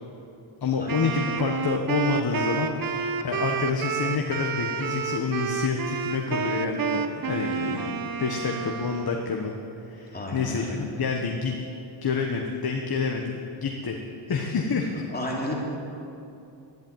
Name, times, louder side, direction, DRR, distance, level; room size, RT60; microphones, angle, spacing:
voice 1, 0.6-9.5 9.8-11.7 12.0-14.0 14.3-14.9, left 5 dB, 50° left, 2 dB, 1.3 m, -28 dB
Wind instrument woodwind instrument, 0.9-9.3, right 6 dB, 45° right, 0.9 m, -30 dB
voice 2, 10.1-10.8 15.1-15.5, left 1 dB, 20° left, -3 dB, 3.2 m, -32 dB
12.0 x 10.5 x 9.1 m, 2.7 s
wide cardioid pair, 110°, 47 cm